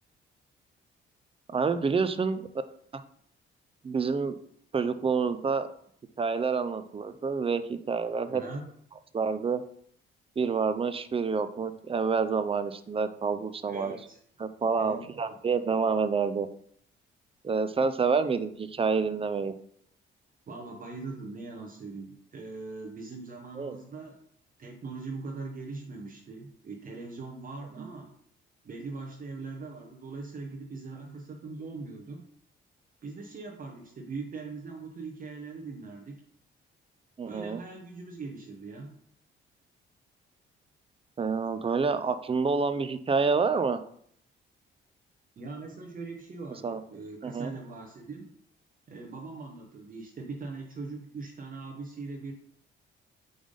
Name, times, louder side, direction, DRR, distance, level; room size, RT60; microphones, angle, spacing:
voice 1, 1.5-2.4 2.9-3.0 3.8-4.4 4.7-5.7 6.2-8.4 9.1-9.6 10.4-14.0 14.4-16.5 17.4-19.5 23.6-23.8 37.2-37.6 41.2-43.8 46.6-46.8 47.2-47.5, right 5 dB, 30° right, 11 dB, 0.5 m, -28 dB
voice 2, 8.3-8.7 13.7-14.2 14.8-15.4 20.5-24.2 24.6-28.2 28.6-32.2 33.0-36.2 37.3-38.9 45.4-48.3 48.9-52.3, right 3 dB, 45° right, 0 dB, 1.0 m, -41 dB
5.2 x 3.5 x 5.3 m, 0.65 s
cardioid pair, 90°, 20 cm